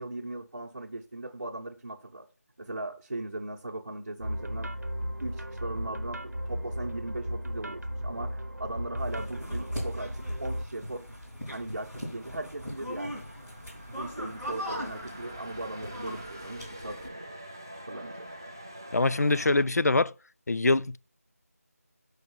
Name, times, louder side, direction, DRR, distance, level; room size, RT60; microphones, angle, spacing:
voice 1, 0.0-2.2 2.6-4.7 5.2-11.0 11.5-13.2 13.9-17.0 17.8-18.3, right 2 dB, 50° right, 1.0 m, -38 dB
sound 1, 4.2-10.6, equal, 85° right, 0.9 m, -35 dB
sound 2, 9.0-17.1, equal, 5° left, 1.3 m, -40 dB
sound 3, 11.7-19.6, right 1 dB, 15° right, 0.3 m, -45 dB
voice 2, 18.9-20.1 20.5-21.0, left 2 dB, 75° left, 0.3 m, -24 dB
6.3 x 4.9 x 4.3 m
figure-of-eight pair, 165°, 9 cm